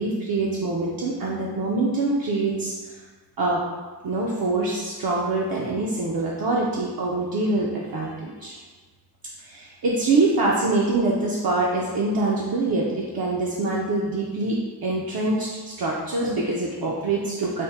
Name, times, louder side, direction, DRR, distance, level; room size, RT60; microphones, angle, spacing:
voice 1, 0.0-2.7 3.4-3.6 4.0-8.6 9.4-17.6, right 2 dB, 60° right, -5 dB, 0.5 m, -24 dB
3.4 x 2.0 x 4.1 m, 1.3 s
wide cardioid pair, 130°, 40 cm